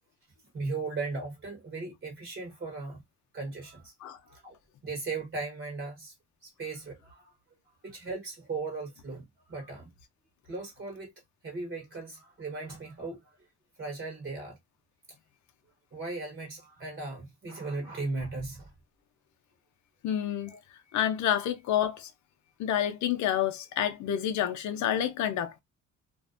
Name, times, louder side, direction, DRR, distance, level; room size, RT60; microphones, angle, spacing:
voice 1, 0.5-3.0 3.3-3.9 4.2-4.6 4.8-6.1 6.4-7.3 7.8-9.9 10.5-11.1 11.4-13.2 13.8-14.6 15.9-18.7 20.5-20.6, right 3 dB, 40° right, 1.0 m, -37 dB
voice 2, 20.0-20.5 20.9-22.1 22.6-25.6, left 10 dB, 70° left, 0.5 m, -28 dB
2.5 x 2.1 x 2.4 m
cardioid pair, 90°, 30 cm